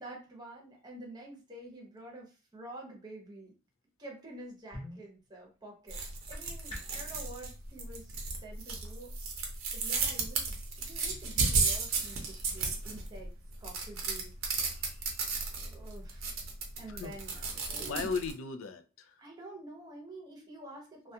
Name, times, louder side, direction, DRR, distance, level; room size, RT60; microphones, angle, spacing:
voice 1, 0.0-3.5 4.0-6.0 6.3-8.2 8.4-9.1 9.7-13.3 13.6-14.3 14.7-14.8 15.6-16.4 16.8-18.1 19.2-21.1, right 1 dB, 20° right, 0.7 m, -48 dB
sound 1, 4.3-7.1, equal, 25° left, 0.6 m, -48 dB
sound 2, 5.9-18.3, right 4 dB, 85° right, 0.6 m, -34 dB
voice 2, 14.7-15.2 16.9-17.4 17.8-19.2, left 5 dB, 70° left, 0.3 m, -38 dB
2.3 x 2.2 x 2.7 m
head